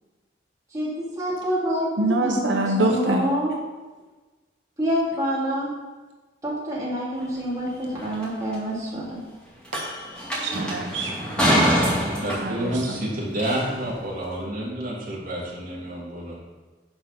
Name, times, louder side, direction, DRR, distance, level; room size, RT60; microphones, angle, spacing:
voice 1, 0.7-3.5 4.8-5.7 6.4-9.2 11.4-11.6, equal, 20° right, -8 dB, 2.9 m, -27 dB
voice 2, 2.0-3.3 10.4-11.5 11.9-12.8, right 2 dB, 80° right, 2 dB, 0.8 m, -26 dB
sound 1, 7.2-7.3 8.0-8.2 8.5-8.6 9.6-14.0, equal, 5° left, 2.3 m, -26 dB
voice 3, 12.2-16.3, right 1 dB, 45° right, -6 dB, 3.0 m, -29 dB
10.5 x 4.8 x 6.0 m, 1.3 s
head